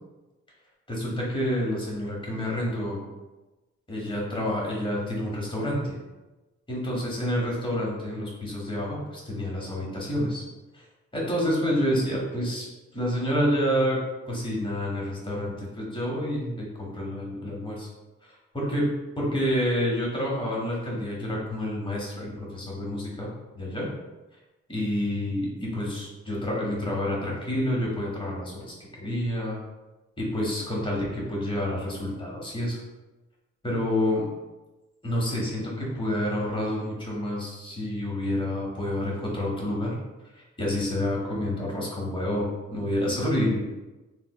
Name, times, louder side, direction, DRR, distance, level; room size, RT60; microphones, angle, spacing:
voice 1, 0.9-3.1 3.9-6.0 6.7-10.5 10.7-10.8 11.1-12.7 12.9-14.0 14.2-17.9 18.2-18.9 19.2-23.3 23.5-23.9 24.7-29.6 30.2-32.8 33.6-34.3 35.0-40.0 40.3-43.6, left 1 dB, 15° left, -4 dB, 1.2 m, -28 dB
3.2 x 2.8 x 2.2 m, 1.1 s
cardioid pair, 65°, 29 cm